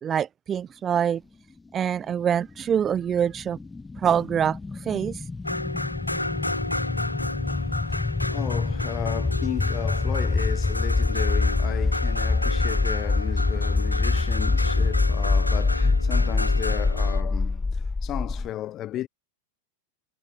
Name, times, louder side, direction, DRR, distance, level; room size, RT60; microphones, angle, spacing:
voice 1, 0.0-1.2 1.7-3.6 4.0-5.2, right 8 dB, 25° right, 0.5 m, -25 dB
sound 1, 2.6-18.5, left 3 dB, 10° left, 1.2 m, -25 dB
sound 2, 5.4-17.2, left 1 dB, 85° left, 3.6 m, -32 dB
voice 2, 7.4-19.1, left 13 dB, 30° left, 4.9 m, -35 dB
figure-of-eight pair, 90°, 0 cm